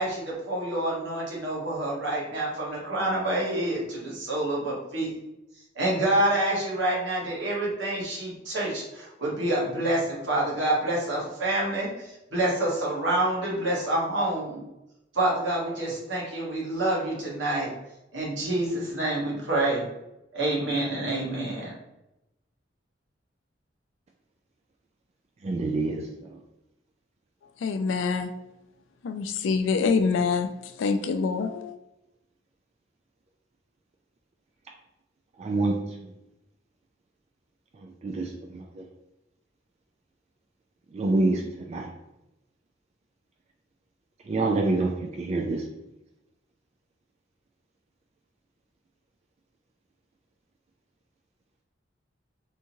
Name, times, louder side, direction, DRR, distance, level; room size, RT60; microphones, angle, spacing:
voice 1, 0.0-5.1 5.7-14.6 15.1-17.7 18.1-19.8 20.3-21.7, right 1 dB, 70° right, -4 dB, 1.2 m, -27 dB
voice 2, 25.4-26.1 35.4-35.8 38.0-38.3 38.8-38.9 40.9-41.4 41.7-41.9 44.3-45.6, right 2 dB, 35° right, 1 dB, 0.3 m, -26 dB
voice 3, 27.6-28.3 29.0-31.8, left 5 dB, 75° left, 9 dB, 0.3 m, -26 dB
3.6 x 2.7 x 2.9 m, 0.91 s
head